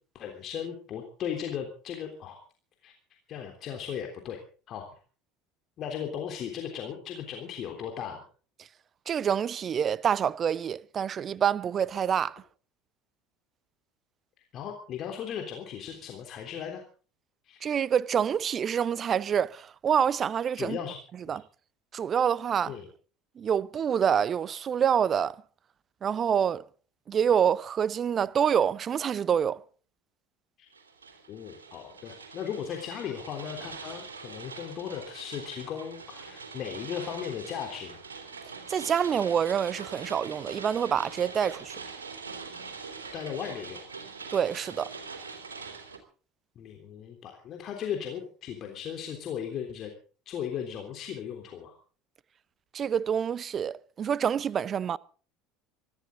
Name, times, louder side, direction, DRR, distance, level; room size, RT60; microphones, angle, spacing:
voice 1, 0.1-2.4 2.8-2.9 3.3-4.4 4.7-4.8 5.8-8.2 14.5-16.8 17.4-17.7 20.6-21.0 22.7-22.9 30.6-30.7 31.3-38.0 43.1-43.8 46.5-49.9 50.2-51.7, left 8 dB, 40° left, 3.4 m, -37 dB
voice 2, 9.1-12.4 17.6-20.8 21.3-21.4 21.9-22.7 23.4-25.4 26.0-26.6 27.1-29.6 38.7-41.8 44.3-44.9 52.7-55.0, right 8 dB, 35° right, 0.7 m, -27 dB
sound 1, 30.7-46.0, right 5 dB, 75° right, 3.4 m, -43 dB
24.5 x 13.5 x 3.8 m
figure-of-eight pair, 65°, 0 cm